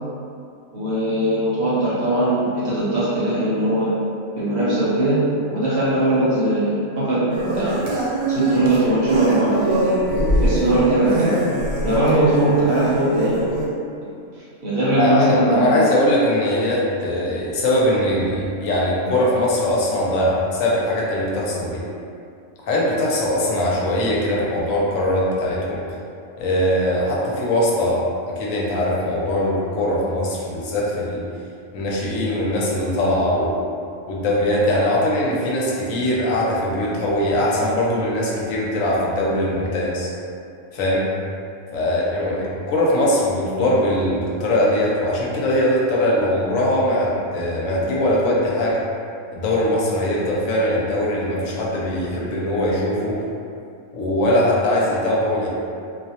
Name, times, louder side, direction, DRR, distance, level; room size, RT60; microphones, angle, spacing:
voice 1, 0.7-3.9 4.4-5.2 5.5-7.2 7.5-7.8 8.3-11.3 11.8-13.4 14.0-14.1 14.6-15.8, right 1 dB, 60° right, -9 dB, 0.6 m, -20 dB
sound 1, 7.3-13.7, right 1 dB, 85° right, 1.0 m, -23 dB
voice 2, 15.0-21.8 22.7-25.8 26.4-28.0 28.4-31.2 31.7-33.6 34.1-40.1 40.7-41.0 41.7-48.8 49.3-53.2 53.9-55.5, left 1 dB, 80° left, -5 dB, 1.0 m, -21 dB
2.4 x 2.0 x 2.7 m, 2.5 s
omnidirectional pair, 1.4 m